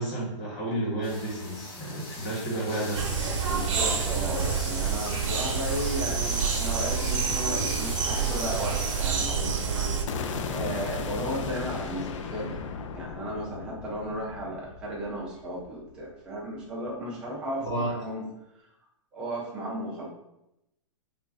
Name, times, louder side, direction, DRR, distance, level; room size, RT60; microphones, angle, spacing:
voice 1, 0.0-3.3 17.6-17.9, right 1 dB, 25° left, -6 dB, 1.2 m, -31 dB
sound 1, 1.0-9.1, left 2 dB, 45° left, 1.0 m, -40 dB
sound 2, 2.9-10.0, right 5 dB, 75° right, 0.7 m, -28 dB
voice 2, 3.4-12.6 12.9-18.2 19.1-20.1, right 1 dB, 5° right, -5 dB, 0.3 m, -35 dB
sound 3, 10.1-16.1, left 5 dB, 75° left, 0.4 m, -36 dB
3.1 x 2.4 x 3.8 m, 0.86 s
hypercardioid pair, 180°, 16 cm